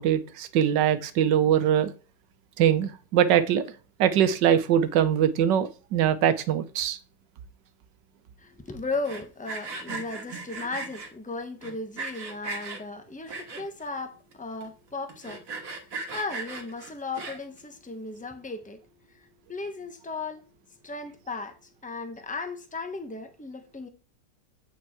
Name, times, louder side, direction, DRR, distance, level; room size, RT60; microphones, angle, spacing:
voice 1, 0.0-1.9 2.6-3.6 4.0-7.0, right 9 dB, 90° right, 1.4 m, -22 dB
voice 2, 8.4-18.8 19.1-20.4 20.8-23.9, left 3 dB, 5° left, 0.7 m, -36 dB
Sawing, 8.9-11.1 11.6-12.8 13.3-13.9 14.3-14.4 14.6-14.7 15.1-17.6, right 3 dB, 55° right, 1.9 m, -37 dB
8.9 x 4.7 x 4.6 m
omnidirectional pair, 1.9 m